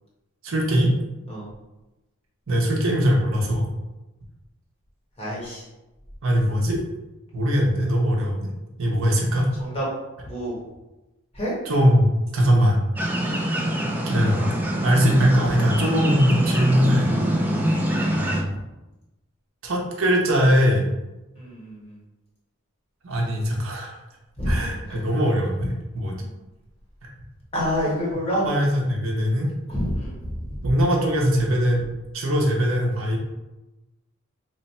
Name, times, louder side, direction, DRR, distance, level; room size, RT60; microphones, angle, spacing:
voice 1, 0.4-0.9 2.5-3.7 6.2-6.8 7.3-8.5 8.8-9.5 11.6-12.1 12.3-12.8 14.1-14.5 14.8-17.1 18.1-18.5 19.6-20.8 23.0-23.9 24.5-26.3 27.0-27.1 28.4-29.5 30.6-31.8 32.1-33.2, equal, 70° right, -1 dB, 0.8 m, -21 dB
voice 2, 5.2-5.6 9.6-9.9 10.2-10.6 11.3-11.5 17.6-17.8 21.3-21.9 24.4-24.6 24.9-25.0 27.5-28.4 29.7-30.3, equal, 30° left, -6 dB, 1.3 m, -27 dB
sound 1, 13.0-18.4, equal, 10° right, 0.3 m, -24 dB
3.0 x 2.2 x 4.2 m, 1.0 s
head